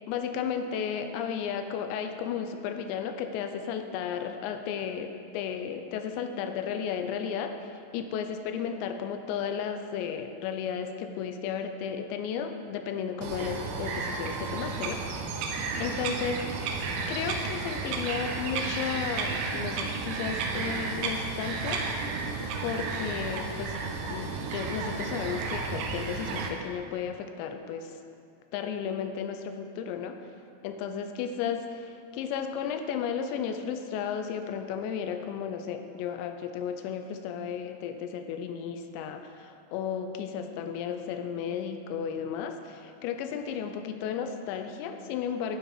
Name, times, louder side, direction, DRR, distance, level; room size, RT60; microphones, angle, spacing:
voice 1, 0.1-15.0 15.8-16.7 17.1-21.8 22.6-23.8 24.1-27.9 28.5-30.1 30.6-45.6, left 7 dB, 85° left, 7 dB, 2.8 m, -34 dB
Bird vocalization bird call bird song, 13.2-26.5, right 4 dB, 80° right, 2.6 m, -32 dB
11.5 x 5.3 x 4.7 m, 2.4 s
omnidirectional pair, 5.1 m